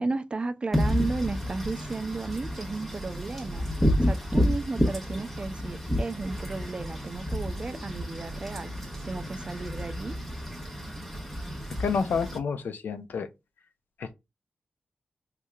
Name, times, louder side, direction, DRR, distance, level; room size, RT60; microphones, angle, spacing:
voice 1, 0.0-3.7 4.0-8.7 9.0-10.2, right 3 dB, 30° right, 0.4 m, -34 dB
Wind / Rain, 0.7-12.4, equal, 5° left, 1.2 m, -30 dB
voice 2, 11.8-13.3 14.0-14.1, left 5 dB, 90° left, 0.5 m, -29 dB
4.8 x 2.7 x 2.3 m
wide cardioid pair, 120°, 3 cm